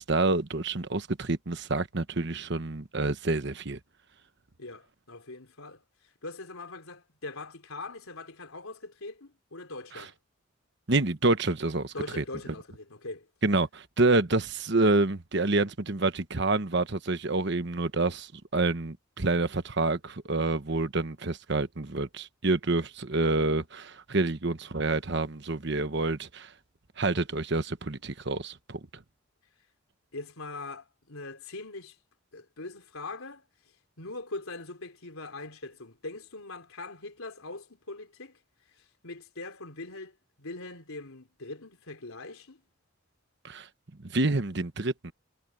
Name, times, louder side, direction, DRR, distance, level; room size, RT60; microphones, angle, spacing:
voice 1, 0.0-3.8 9.9-10.0 10.9-12.2 13.4-26.5 27.0-29.0 43.4-43.7 44.0-45.1, right 2 dB, 55° right, 1.1 m, -28 dB
voice 2, 4.6-10.2 11.9-13.3 30.1-32.0 32.3-33.4 34.0-38.4 38.7-42.6, left 2 dB, 90° left, 3.8 m, -42 dB
head